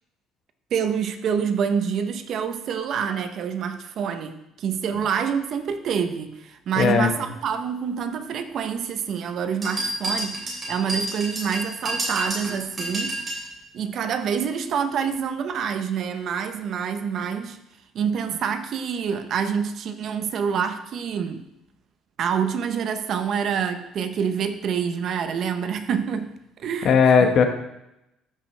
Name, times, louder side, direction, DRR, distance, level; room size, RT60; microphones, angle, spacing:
voice 1, 0.7-13.1 13.7-17.6 17.9-21.4 22.2-27.3, right 7 dB, 45° right, 9 dB, 0.6 m, -27 dB
voice 2, 6.8-7.1 26.8-27.4, left 6 dB, 45° left, 6 dB, 1.0 m, -17 dB
sound 1, 9.6-13.5, right 1 dB, 20° right, 2.9 m, -29 dB
13.5 x 5.9 x 3.2 m, 0.87 s
cardioid pair, 160°, 0 cm